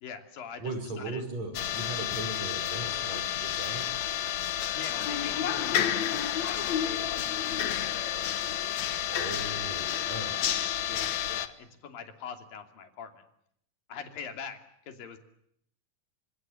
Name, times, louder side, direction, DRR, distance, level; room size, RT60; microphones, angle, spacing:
voice 1, 0.0-0.7 1.0-1.2 4.7-8.3 10.9-13.2 13.9-14.6 14.9-15.2, left 6 dB, 85° left, 6 dB, 4.6 m, -43 dB
voice 2, 0.6-3.9 9.1-10.4, right 2 dB, 50° right, 6 dB, 6.9 m, -38 dB
sound 1, 1.5-11.5, left 10 dB, 60° left, 2.4 m, -30 dB
28.0 x 26.5 x 7.8 m, 0.72 s
omnidirectional pair, 3.9 m